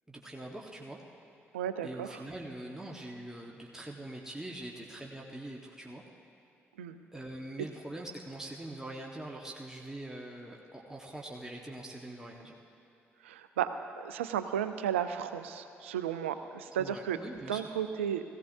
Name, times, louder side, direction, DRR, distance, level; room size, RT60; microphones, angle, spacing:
voice 1, 0.1-1.0 1.8-6.0 7.1-12.5 16.8-17.7, right 1 dB, 10° right, -1 dB, 1.3 m, -43 dB
voice 2, 1.5-2.1 6.8-7.0 13.2-13.7 13.9-17.2 17.5-18.2, right 9 dB, 85° right, 10 dB, 0.4 m, -33 dB
17.5 x 15.5 x 2.7 m, 2.8 s
figure-of-eight pair, 45°, 6 cm